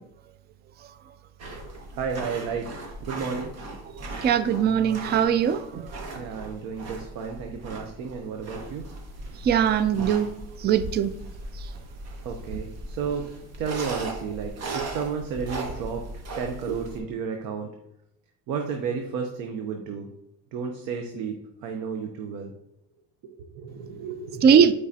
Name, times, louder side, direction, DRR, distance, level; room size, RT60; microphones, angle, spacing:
sound 1, 1.4-17.0, right 2 dB, 55° right, 1.4 m, -38 dB
voice 1, 1.6-3.5 6.1-8.9 12.2-13.3 13.6-17.7 18.5-20.1 20.5-22.5 23.2-24.7, right 6 dB, 80° right, 3 dB, 0.8 m, -32 dB
voice 2, 4.2-5.9 9.4-10.3 10.6-11.1 24.4-24.7, right 8 dB, 35° right, 12 dB, 0.4 m, -20 dB
7.2 x 4.8 x 2.8 m, 0.81 s
cardioid pair, 120°, 31 cm